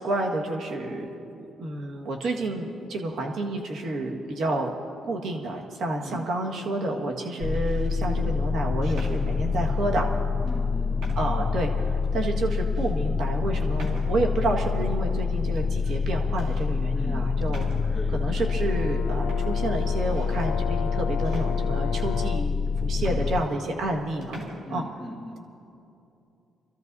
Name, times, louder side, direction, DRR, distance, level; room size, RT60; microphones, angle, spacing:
voice 1, 0.0-4.8 5.0-10.1 11.1-17.7 18.1-24.9, right 2 dB, 70° right, 1 dB, 1.7 m, -30 dB
sound 1, 6.1-6.6 7.4-8.0 8.8-9.8 10.5-10.6 11.0-11.5 12.0-12.1 12.7-12.9 13.8-14.4 15.5-16.0 16.4-16.7 17.5-18.1 18.9-19.0 19.3-20.5 21.2-22.1 22.7-22.8 23.0-24.0 24.2-24.6, right 1 dB, 85° right, 2.1 m, -44 dB
sound 2, 7.4-23.4, left 5 dB, 40° left, 0.8 m, -26 dB
voice 2, 10.4-11.4 16.9-17.6 17.9-18.4 23.0-23.2 24.7-25.4, left 1 dB, 10° left, -5 dB, 1.7 m, -40 dB
Brass instrument, 18.4-22.6, left 10 dB, 80° left, 0.3 m, -36 dB
27.5 x 13.5 x 2.7 m, 2.7 s
cardioid pair, 90°, 0 cm